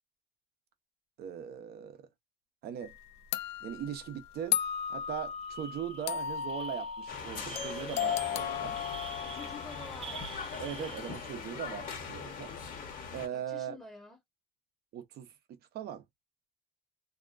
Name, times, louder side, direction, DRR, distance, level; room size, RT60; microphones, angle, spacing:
voice 1, 1.2-2.1 2.6-2.9 3.6-4.6 4.9-8.8 10.6-12.5 13.1-13.8 14.9-16.0, right 9 dB, 70° right, 0.8 m, -40 dB
sound 1, 2.8-2.9 3.3-10.1, left 9 dB, 80° left, 0.5 m, -36 dB
sound 2, 4.7-4.9 5.2-11.6, right 7 dB, 35° right, 0.5 m, -48 dB
sound 3, 7.1-13.3, left 6 dB, 55° left, 1.1 m, -41 dB
voice 2, 9.2-10.5 13.3-14.2, left 3 dB, ahead, 0.8 m, -49 dB
2.8 x 2.2 x 2.5 m
cardioid pair, 110°, 17 cm